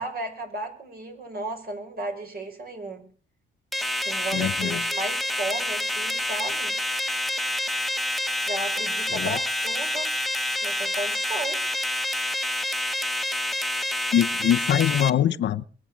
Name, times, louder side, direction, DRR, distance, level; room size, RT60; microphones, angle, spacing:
voice 1, 0.0-3.1 4.0-6.7 8.5-10.1 10.6-11.6, right 2 dB, 50° right, 4 dB, 5.7 m, -34 dB
sound 1, 3.7-15.1, left 1 dB, ahead, 1.3 m, -28 dB
voice 2, 4.3-4.8 9.1-9.4 14.1-15.6, left 10 dB, 65° left, 11 dB, 0.8 m, -23 dB
22.5 x 7.9 x 7.2 m, 0.43 s
cardioid pair, 90°, 20 cm